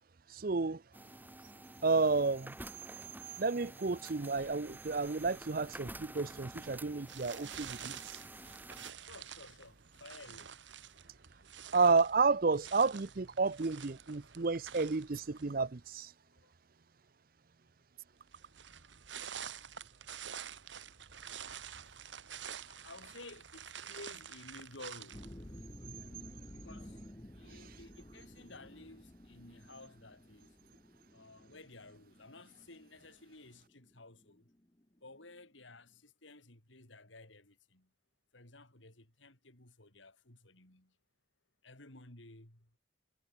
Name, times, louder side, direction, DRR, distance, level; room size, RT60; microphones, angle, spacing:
voice 1, 0.3-0.8 1.8-2.5 3.4-7.9 11.7-16.1, right 4 dB, 50° right, 0.6 m, -31 dB
sound 1, 0.9-8.9, right 1 dB, 10° right, 4.1 m, -50 dB
sound 2, 7.1-15.7 18.3-25.6, right 8 dB, 75° right, 1.8 m, -48 dB
voice 2, 9.0-10.5 16.3-16.5 22.7-25.3 26.5-27.0 27.4-30.5 31.1-34.5 35.0-37.9 38.3-40.9 41.6-42.7, left 2 dB, 85° left, 5.2 m, -54 dB
sound 3, 25.1-35.6, left 1 dB, 20° left, 1.3 m, -53 dB
head